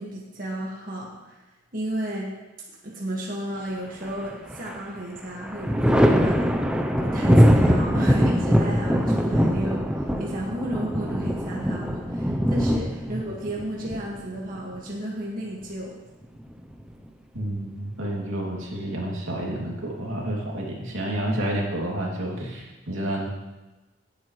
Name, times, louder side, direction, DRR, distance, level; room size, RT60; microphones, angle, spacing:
voice 1, 0.0-1.4 1.7-2.3 2.8-6.5 7.0-9.9 10.2-16.0, right 1 dB, 45° right, -3 dB, 1.8 m, -33 dB
Thunder, 4.0-4.8 5.2-14.7 16.2-17.1, equal, 5° right, 0.6 m, -22 dB
voice 2, 17.3-23.3, right 1 dB, 80° right, -2 dB, 2.6 m, -30 dB
16.5 x 8.6 x 3.2 m, 1.1 s
head